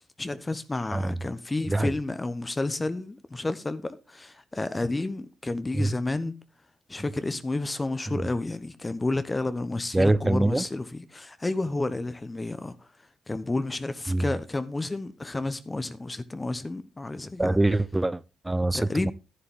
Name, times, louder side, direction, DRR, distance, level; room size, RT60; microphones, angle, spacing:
voice 1, 0.2-6.4 6.9-12.7 13.3-17.6 18.7-19.1, left 2 dB, 25° left, 1.0 m, -31 dB
voice 2, 9.9-10.7 14.1-14.2 17.4-19.1, right 2 dB, 15° right, 0.6 m, -24 dB
11.5 x 10.5 x 3.7 m
hypercardioid pair, 45°, 0 cm